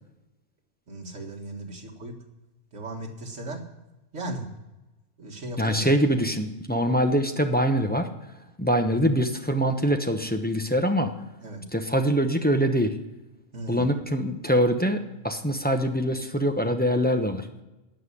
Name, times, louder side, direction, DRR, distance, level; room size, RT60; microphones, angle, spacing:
voice 1, 0.9-2.1 2.7-3.6 4.1-4.5 5.2-5.9 11.4-11.6 13.5-13.9, right 1 dB, 70° right, 1 dB, 2.2 m, -36 dB
voice 2, 5.6-8.1 8.6-11.1 11.7-13.0 13.7-15.0 15.2-17.5, equal, 10° left, 5 dB, 0.8 m, -24 dB
17.5 x 5.8 x 9.8 m, 1.0 s
omnidirectional pair, 1.3 m